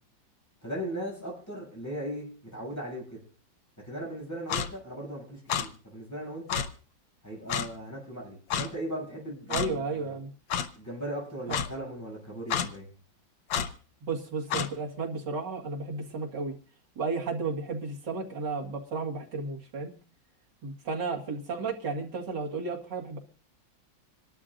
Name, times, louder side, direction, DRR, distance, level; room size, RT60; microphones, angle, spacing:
voice 1, 0.6-2.3 2.5-3.2 3.8-6.6 7.2-10.2 10.8-12.9, right 1 dB, 10° left, -4 dB, 7.5 m, -38 dB
Clock, 4.5-4.7 5.5-5.7 6.5-6.7 7.5-7.7 8.5-8.7 9.5-9.7 10.5-10.7 11.5-11.7 12.5-12.7 13.5-13.7 14.5-14.7, left 8 dB, 85° left, 1.6 m, -28 dB
voice 2, 9.5-10.3 11.5-11.6 14.0-16.5 17.0-19.9 20.6-23.2, right 4 dB, 65° right, 0 dB, 2.6 m, -33 dB
27.0 x 12.0 x 2.6 m, 0.40 s
omnidirectional pair, 2.1 m